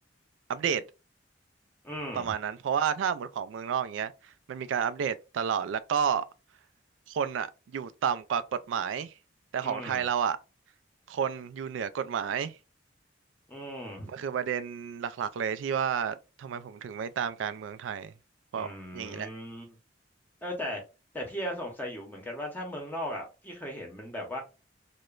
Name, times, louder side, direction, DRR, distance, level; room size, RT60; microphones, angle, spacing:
voice 1, 0.5-0.8 2.1-4.1 4.5-6.3 7.1-9.1 9.5-10.4 11.1-12.6 14.1-18.1 18.5-19.3, right 7 dB, 90° right, 0.3 m, -31 dB
voice 2, 1.8-2.3 9.6-10.0 13.5-14.1 18.5-19.8 20.4-20.8 21.1-24.4, equal, 10° left, 0.7 m, -37 dB
2.9 x 2.1 x 2.3 m
head